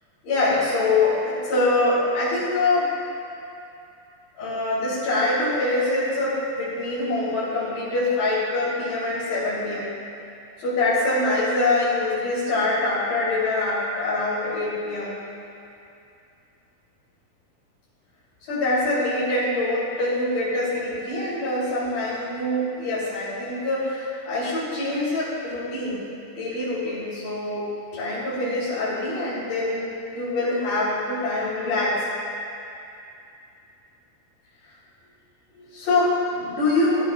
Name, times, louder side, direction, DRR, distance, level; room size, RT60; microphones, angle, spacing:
voice 1, 0.2-2.9 4.4-9.9 10.6-15.2 18.4-26.1 26.4-32.0 35.6-37.1, left 2 dB, 65° left, -14 dB, 5.3 m, -24 dB
21.5 x 13.0 x 2.4 m, 2.6 s
omnidirectional pair, 4.4 m